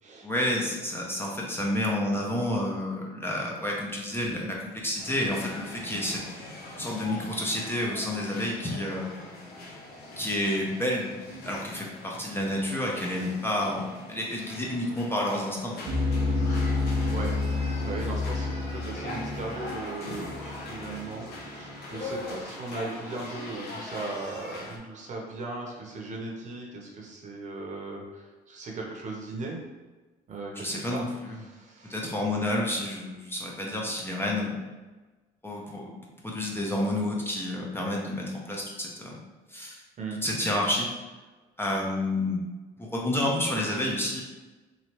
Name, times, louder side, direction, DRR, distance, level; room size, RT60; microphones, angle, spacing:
voice 1, 0.2-6.2 6.8-9.1 10.2-11.1 11.4-15.9 30.6-31.4 31.9-34.6 35.4-35.9 36.2-39.2 39.5-39.8 40.2-40.9 41.6-42.4 42.8-44.2, left 1 dB, 15° left, -2 dB, 0.5 m, -29 dB
sound 1, 5.0-24.8, left 2 dB, 75° left, 0.8 m, -41 dB
sound 2, 15.9-22.4, left 3 dB, 80° right, 0.5 m, -30 dB
voice 2, 16.6-17.3 17.8-29.6 30.3-31.1 31.4-32.0 40.0-40.2, right 2 dB, 45° right, -1 dB, 0.8 m, -38 dB
3.1 x 2.6 x 2.9 m, 1.2 s
cardioid pair, 110°, 17 cm